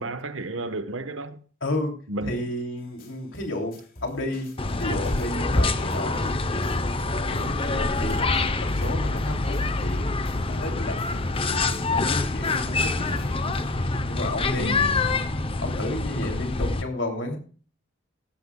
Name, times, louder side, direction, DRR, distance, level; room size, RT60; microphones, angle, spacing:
voice 1, 0.0-1.4 2.1-2.4 14.6-14.9, right 2 dB, 85° right, 1.2 m, -32 dB
voice 2, 1.6-10.1 10.4-17.4, left 1 dB, 80° left, 2.9 m, -33 dB
sound 1, 2.8-13.8, left 2 dB, 50° left, 3.2 m, -47 dB
sound 2, 4.6-16.8, left 3 dB, 30° left, 0.7 m, -26 dB
16.0 x 14.0 x 2.3 m
head